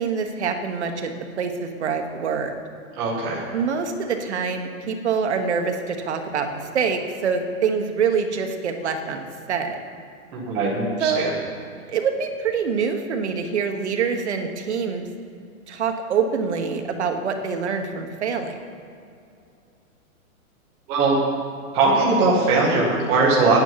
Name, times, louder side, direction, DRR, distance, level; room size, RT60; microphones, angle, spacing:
voice 1, 0.0-2.5 3.5-9.8 11.0-11.3 11.9-15.1 15.7-18.6, right 6 dB, 50° right, 5 dB, 1.2 m, -25 dB
voice 2, 2.9-3.4 10.3-11.3 20.9-21.2 21.7-23.6, right 3 dB, 10° right, -5 dB, 0.8 m, -20 dB
9.2 x 8.6 x 7.3 m, 2.5 s
hypercardioid pair, 180°, 42 cm